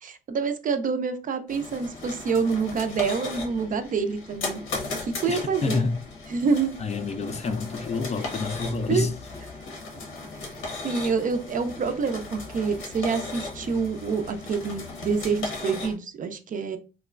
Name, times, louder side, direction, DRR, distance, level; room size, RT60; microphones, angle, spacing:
voice 1, 0.0-4.6 5.0-5.8 6.3-6.7 8.9-9.0 10.8-16.8, right 5 dB, 45° right, 0.4 m, -27 dB
sound 1, 1.5-15.9, left 3 dB, 90° left, 0.9 m, -37 dB
voice 2, 5.3-6.0 6.8-9.1, left 4 dB, 35° left, 0.4 m, -28 dB
3.0 x 2.1 x 2.3 m
cardioid pair, 90°, 20 cm